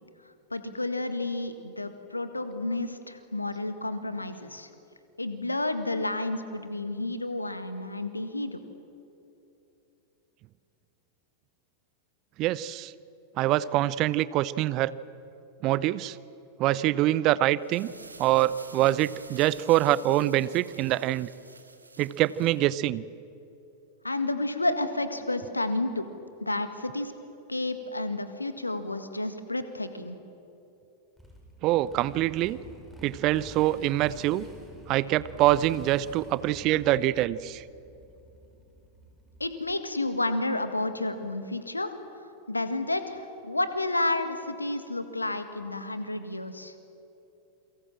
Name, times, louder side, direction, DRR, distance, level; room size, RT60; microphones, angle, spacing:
voice 1, 0.5-4.7 5.2-8.6 24.0-26.1 26.4-27.1 27.5-30.2 39.4-41.9 42.5-46.7, left 2 dB, 85° left, 10 dB, 1.9 m, -31 dB
voice 2, 12.4-12.9 13.4-14.9 15.6-16.2 16.6-17.9 18.2-21.3 22.0-23.0 31.6-32.6 33.0-34.5 34.9-37.6, right 15 dB, 40° right, 19 dB, 0.7 m, -25 dB
sound 1, 17.5-22.7, right 3 dB, 80° right, 1.8 m, -50 dB
Motorcycle, 31.2-39.8, right 1 dB, ahead, 6.8 m, -48 dB
29.0 x 24.0 x 7.6 m, 2.8 s
figure-of-eight pair, 90°, 0 cm